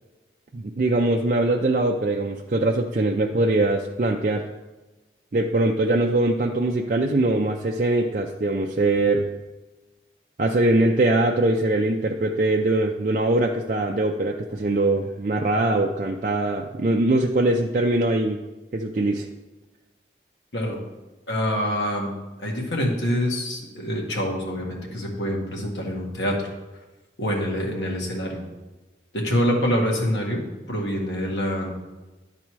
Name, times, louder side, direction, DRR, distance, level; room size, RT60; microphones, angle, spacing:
voice 1, 0.5-4.4 5.3-9.2 10.4-18.4 18.7-19.3, right 2 dB, 45° right, 1 dB, 0.4 m, -22 dB
voice 2, 21.3-26.5 27.2-28.4 29.1-30.4 30.7-31.7, equal, 85° left, -1 dB, 1.7 m, -26 dB
11.0 x 4.1 x 4.6 m, 1.1 s
head